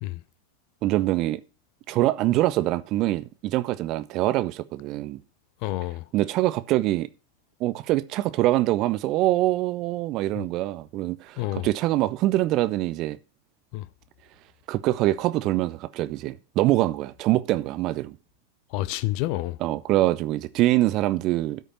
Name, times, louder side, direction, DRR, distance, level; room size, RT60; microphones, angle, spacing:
voice 1, 0.8-1.4 1.9-5.2 6.1-7.1 7.6-13.2 14.7-18.2 19.6-21.6, right 16 dB, 40° right, 0.6 m, -24 dB
voice 2, 5.6-6.0 10.4-10.5 11.4-11.7 13.7-13.9 18.7-19.6, left 17 dB, 45° left, 0.6 m, -28 dB
13.0 x 5.1 x 5.7 m
figure-of-eight pair, 90°, 0 cm